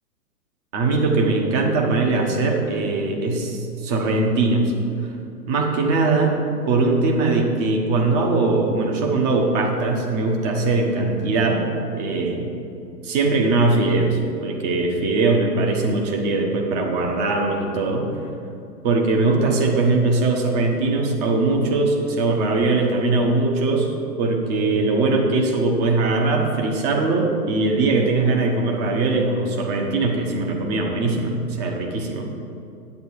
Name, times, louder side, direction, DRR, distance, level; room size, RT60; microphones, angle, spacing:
voice 1, 0.7-4.7 5.5-6.3 6.7-11.6 11.9-12.5 13.0-18.1 18.8-23.9 24.2-32.2, right 3 dB, 25° right, 1 dB, 1.2 m, -21 dB
9.4 x 8.1 x 4.7 m, 2.7 s
figure-of-eight pair, 125°, 48 cm